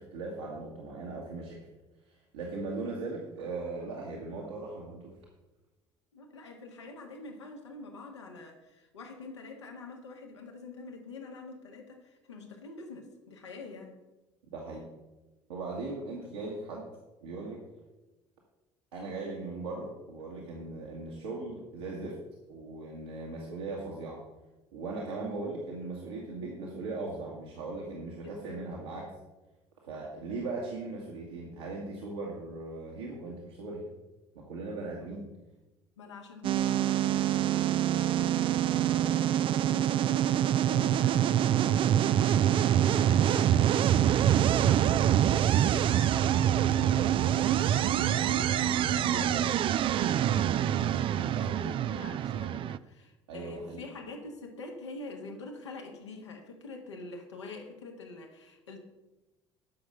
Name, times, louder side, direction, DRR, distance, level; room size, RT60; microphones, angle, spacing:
voice 1, 0.0-1.6 2.1-5.1 14.5-14.8 15.5-16.9 17.2-17.6 18.9-22.2 22.5-24.2 24.7-29.1 29.8-33.9 34.4-35.3 49.0-49.5 51.3-51.5 53.3-53.8, right 3 dB, 70° right, -3 dB, 1.8 m, -38 dB
voice 2, 6.1-14.0 28.2-28.6 35.0-35.1 36.0-58.8, left 3 dB, 75° left, 2 dB, 1.7 m, -46 dB
sound 1, 36.4-52.8, right 11 dB, 35° right, 0.4 m, -25 dB
10.5 x 6.2 x 6.8 m, 1.1 s
figure-of-eight pair, 60°, 15 cm